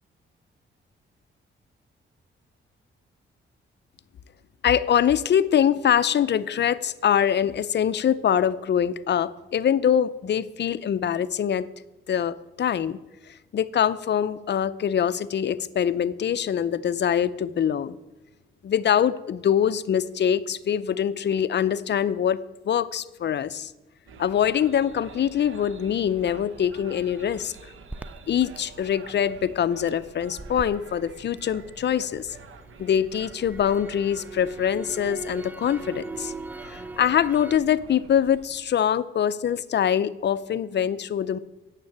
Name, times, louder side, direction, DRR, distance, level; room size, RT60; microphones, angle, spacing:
voice 1, 4.6-11.7 12.1-13.0 13.5-18.0 18.6-23.7 24.2-27.5 28.3-32.4 32.8-36.3 36.7-41.4, left 9 dB, 55° left, 15 dB, 0.6 m, -24 dB
sound 1, 24.1-38.5, right 5 dB, 75° right, 1.1 m, -47 dB
Crackle, 27.9-32.0 32.4-37.6, right 2 dB, 10° right, 0.4 m, -40 dB
9.1 x 7.5 x 8.5 m, 1.1 s
cardioid pair, 90°, 21 cm